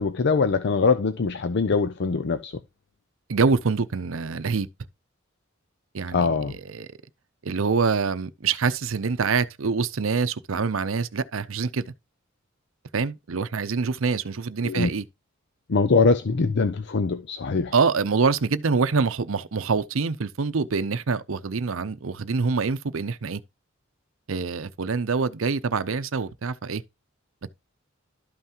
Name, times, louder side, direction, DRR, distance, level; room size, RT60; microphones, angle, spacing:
voice 1, 0.0-2.6 6.1-6.5 14.6-14.9 15.7-17.7, left 4 dB, 60° left, 0.5 m, -22 dB
voice 2, 3.3-4.7 5.9-6.9 7.4-11.9 12.9-15.0 17.7-23.4 24.3-26.8, right 4 dB, 75° right, 0.7 m, -25 dB
12.5 x 5.7 x 2.9 m
head